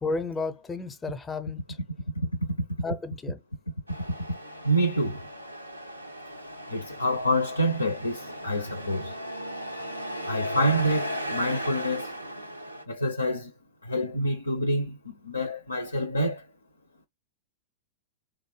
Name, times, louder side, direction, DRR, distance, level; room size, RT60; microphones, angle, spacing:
voice 1, 0.0-1.8 2.8-3.4, left 3 dB, 15° left, 0.5 m, -32 dB
Truck, 3.9-12.8, equal, 85° right, 0.5 m, -36 dB
voice 2, 4.6-5.2 6.7-9.1 10.2-12.1 12.9-13.5 13.8-16.4, equal, 80° left, 0.4 m, -27 dB
3.2 x 2.1 x 3.1 m
figure-of-eight pair, 90°, 0 cm